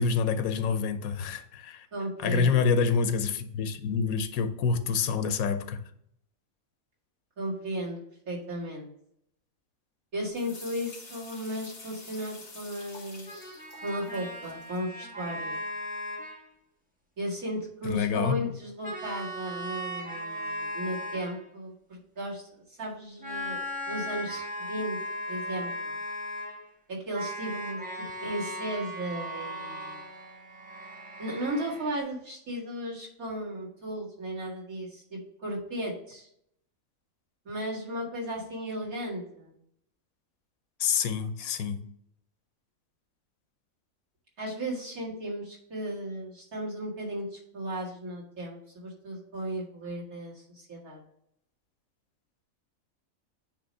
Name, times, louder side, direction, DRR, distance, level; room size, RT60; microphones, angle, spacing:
voice 1, 0.0-1.9 2.2-5.8 17.8-18.4 40.8-41.8, left 5 dB, 85° left, 1.1 m, -27 dB
voice 2, 1.9-2.6 7.4-8.0 8.3-8.9 10.1-15.6 17.2-25.0 25.3-26.0 26.9-27.9 28.2-30.0 31.2-36.3 37.4-39.5 44.4-51.0, equal, 85° right, 2.6 m, -35 dB
sound 1, 10.3-14.8, left 3 dB, 55° left, 1.9 m, -48 dB
sound 2, 13.2-16.4 18.8-21.4 23.2-26.6 26.9-32.0, equal, 5° right, 1.2 m, -37 dB
8.9 x 3.0 x 5.3 m
omnidirectional pair, 1.4 m